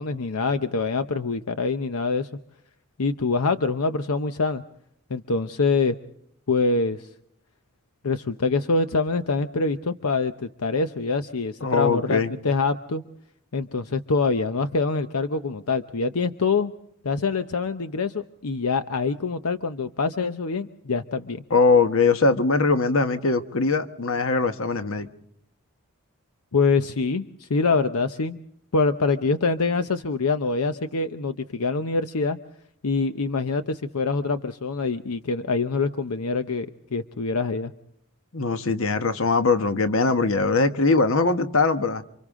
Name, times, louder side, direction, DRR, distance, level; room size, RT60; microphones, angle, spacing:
voice 1, 0.0-2.3 3.0-4.6 5.1-6.0 6.5-7.1 8.0-13.0 13.5-16.7 17.0-21.4 26.5-28.4 28.7-32.4 32.8-37.7, left 4 dB, 80° left, 0.8 m, -25 dB
voice 2, 11.6-12.3 21.5-25.1 38.3-42.0, left 3 dB, 60° left, 1.2 m, -21 dB
29.0 x 25.5 x 3.7 m
head